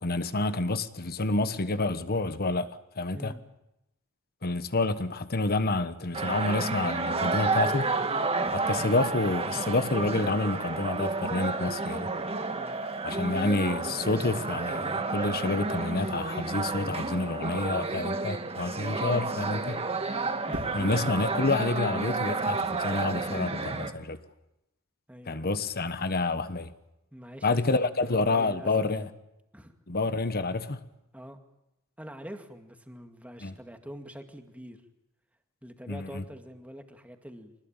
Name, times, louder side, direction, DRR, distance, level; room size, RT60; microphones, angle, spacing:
voice 1, 0.0-2.7 3.0-3.3 4.4-7.9 8.5-12.1 13.0-19.9 20.7-24.2 25.3-26.7 27.4-29.1 29.9-30.8 33.4-33.5 35.9-36.2, left 2 dB, 45° left, 1.2 m, -28 dB
sound 1, 6.1-23.9, right 3 dB, 30° right, 1.7 m, -31 dB
voice 2, 8.4-8.8 12.5-12.8 20.1-20.9 25.1-25.7 27.1-28.7 29.5-29.7 31.1-31.4 32.0-34.8 35.6-37.6, equal, 5° right, 2.1 m, -45 dB
sound 2, 20.5-21.0 23.0-23.3, equal, 60° right, 3.9 m, -41 dB
25.0 x 20.0 x 9.0 m
head